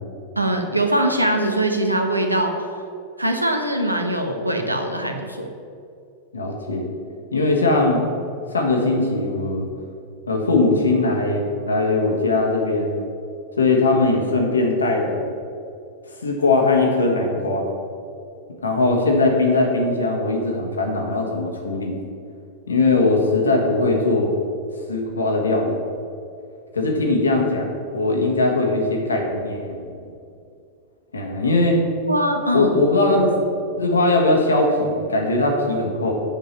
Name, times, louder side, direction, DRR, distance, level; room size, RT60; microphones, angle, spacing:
voice 1, 0.4-2.5 3.2-5.5 32.1-32.7, right 1 dB, 85° right, 4 dB, 0.9 m, -22 dB
voice 2, 6.3-6.9 7.3-8.0 8.5-9.7 10.3-13.0 13.6-15.3 16.2-17.7 18.6-22.0 22.7-24.3 24.9-25.8 26.7-29.8 31.1-31.8 32.5-33.4 33.8-36.1, left 2 dB, 75° left, 1 dB, 1.5 m, -20 dB
7.4 x 5.4 x 7.4 m, 2.5 s
figure-of-eight pair, 90°, 0 cm